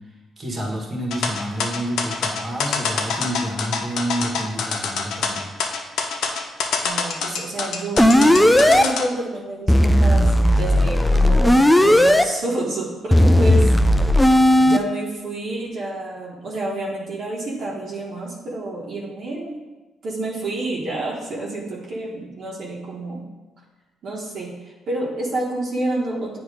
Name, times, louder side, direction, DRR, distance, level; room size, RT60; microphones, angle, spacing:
voice 1, 0.4-5.5, equal, 30° right, -2 dB, 1.6 m, -28 dB
sound 1, 1.1-9.0, left 5 dB, 80° left, 0.7 m, -25 dB
voice 2, 6.8-13.7 14.6-19.6 20.0-23.2 24.0-26.4, right 2 dB, 60° right, -4 dB, 1.3 m, -29 dB
sound 2, 8.0-8.8 9.7-12.2 13.1-14.8, left 1 dB, 5° left, 0.4 m, -15 dB
8.4 x 2.9 x 4.9 m, 1.2 s
cardioid pair, 90°, 0 cm